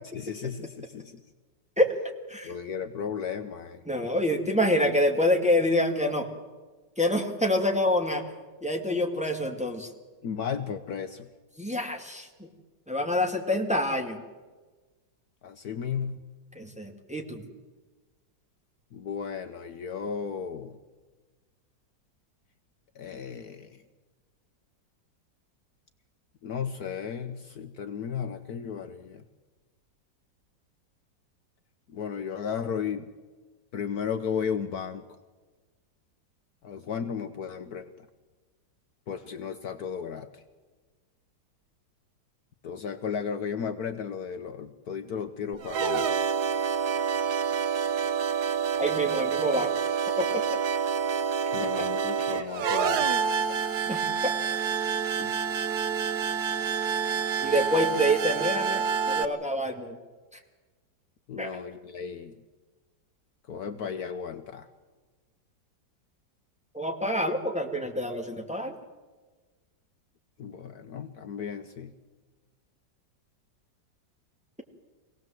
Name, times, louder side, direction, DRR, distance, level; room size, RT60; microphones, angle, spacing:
voice 1, 0.1-1.2 2.4-3.8 10.2-11.3 15.4-16.2 18.9-20.8 22.9-23.8 26.4-29.2 31.9-33.1 33.7-35.1 36.6-37.9 39.1-40.4 42.6-46.1 51.5-53.4 55.2-55.4 61.3-62.3 63.5-64.7 70.4-71.9, left 7 dB, 60° left, 8 dB, 1.3 m, -34 dB
voice 2, 3.9-6.3 7.0-8.2 8.6-9.9 11.6-12.5 12.9-14.2 16.6-17.4 48.8-49.7 50.2-50.6 51.8-51.9 52.2-52.5 53.9-54.3 57.4-60.0 60.3-60.4 61.4-61.6 66.7-68.8, equal, 5° right, 1 dB, 2.1 m, -27 dB
sound 1, 45.5-59.3, right 6 dB, 65° right, 1.5 m, -28 dB
25.0 x 18.0 x 7.6 m, 1.3 s
omnidirectional pair, 1.9 m